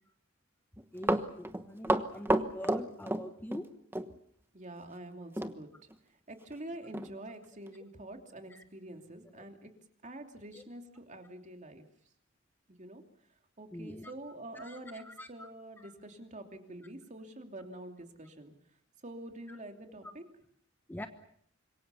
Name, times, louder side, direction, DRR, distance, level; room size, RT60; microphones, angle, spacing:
Run, 0.8-3.7 3.9-4.1 5.4-5.6 5.9-6.0 6.5-6.6 6.9-7.1 7.7-7.8, right 1 dB, 10° right, 1.2 m, -30 dB
voice 1, 0.9-3.7 8.5-8.6 9.3-9.4 10.5-10.6 13.7-14.1 14.5-15.5 15.8-15.9 19.5-19.6 20.0-20.1 20.9-21.1, equal, 10° left, 7 dB, 1.2 m, -44 dB
voice 2, 4.5-5.7 6.3-9.7 10.0-11.9 12.7-13.0 13.6-18.5 19.0-20.2, right 1 dB, 40° right, 5 dB, 2.9 m, -46 dB
26.5 x 22.5 x 7.0 m, 0.66 s
head